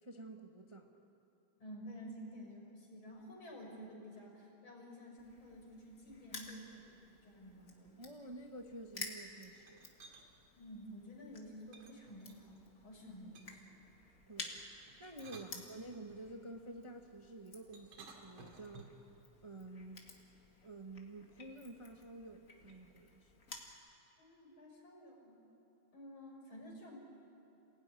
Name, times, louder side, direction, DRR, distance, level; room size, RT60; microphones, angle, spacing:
voice 1, 0.0-1.1 8.0-9.9 14.3-18.9 19.4-20.0 20.6-23.3, right 2 dB, 20° right, 3 dB, 0.8 m, -50 dB
voice 2, 1.6-8.2 10.5-13.8 24.2-25.4 25.9-27.0, equal, 75° left, -1 dB, 5.9 m, -52 dB
Crushing, 5.2-23.7, left 3 dB, 40° left, 2.5 m, -53 dB
sound 1, 9.6-10.3 11.7-12.6 13.3-13.7 14.9-16.2 17.7-19.1, right 3 dB, 80° right, 3.1 m, -57 dB
27.5 x 17.5 x 9.7 m, 2.8 s
omnidirectional pair, 2.3 m